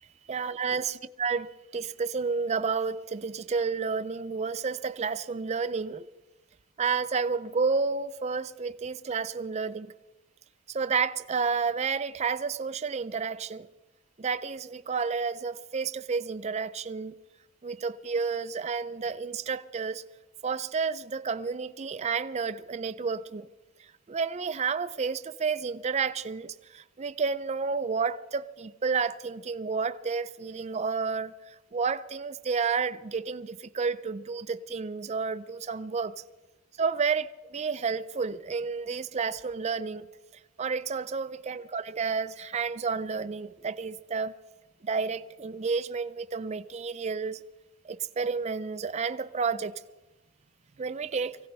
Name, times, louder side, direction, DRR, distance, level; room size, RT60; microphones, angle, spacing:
voice 1, 0.3-6.1 6.8-9.9 10.7-13.7 14.2-17.1 17.6-20.0 20.4-23.5 24.1-36.2 36.8-40.1 40.6-44.4 44.8-47.4 47.8-49.7 50.8-51.4, right 5 dB, 30° right, 0.4 m, -31 dB
24.0 x 16.5 x 3.4 m
head